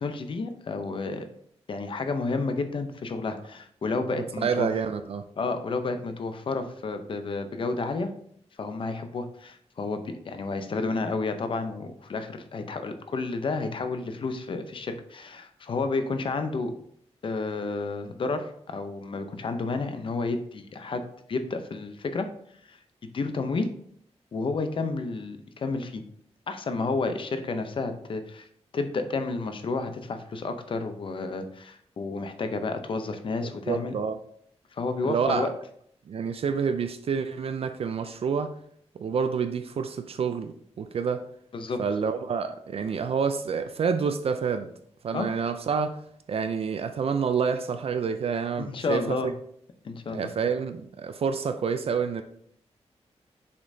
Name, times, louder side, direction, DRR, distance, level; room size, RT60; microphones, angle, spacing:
voice 1, 0.0-1.3 1.7-4.7 5.4-8.1 8.6-16.7 17.2-21.0 21.3-22.3 22.7-22.8 23.1-23.7 24.3-26.0 26.5-28.5 28.7-33.9 34.7-35.5 41.5-41.8 45.1-45.3 48.6-49.3 49.8-50.3, left 3 dB, 50° left, 0.6 m, -31 dB
voice 2, 4.4-5.3 33.7-34.2 35.0-35.5 36.1-38.5 39.0-41.2 41.8-44.7 45.0-46.0 46.3-49.3 50.1-52.2, right 6 dB, 60° right, 0.4 m, -28 dB
6.8 x 5.2 x 2.7 m
wide cardioid pair, 180°, 11 cm